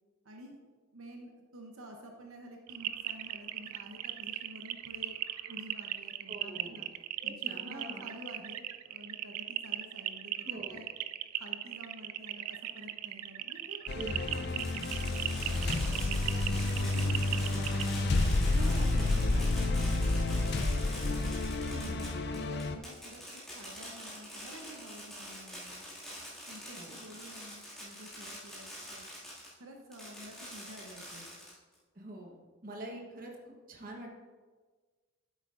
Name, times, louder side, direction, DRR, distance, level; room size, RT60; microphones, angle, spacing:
voice 1, 0.2-0.6 0.9-5.2 5.5-6.9 7.2-10.9 11.3-14.0 14.3-16.2 16.8-18.2 18.5-21.4 21.8-23.2 23.5-25.8 26.5-29.1 29.6-31.3, equal, 70° right, 2 dB, 0.9 m, -50 dB
sound 1, 2.7-17.9, right 13 dB, 90° right, 0.4 m, -38 dB
voice 2, 6.3-6.9 7.2-8.1 10.4-10.8 13.9-14.4 14.7-14.9 16.5-16.7 18.5-20.0 21.4-22.1 26.7-27.0 31.9-34.1, right 1 dB, 40° right, 0 dB, 1.2 m, -45 dB
sound 2, 13.9-22.8, left 2 dB, 50° left, 0.5 m, -30 dB
Fireworks, 14.3-29.5 29.9-31.8, equal, ahead, 2.2 m, -45 dB
9.8 x 8.1 x 2.5 m, 1.4 s
head